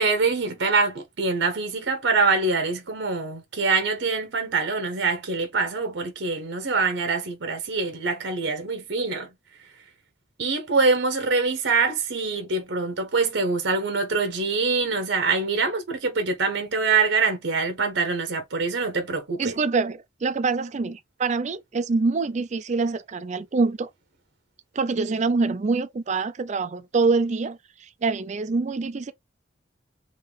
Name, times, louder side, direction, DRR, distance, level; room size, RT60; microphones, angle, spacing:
voice 1, 0.0-9.3 10.4-19.5, right 4 dB, 85° right, 0.9 m, -24 dB
voice 2, 19.4-23.9 24.7-29.1, right 4 dB, 40° right, 0.4 m, -25 dB
3.7 x 2.5 x 3.4 m
head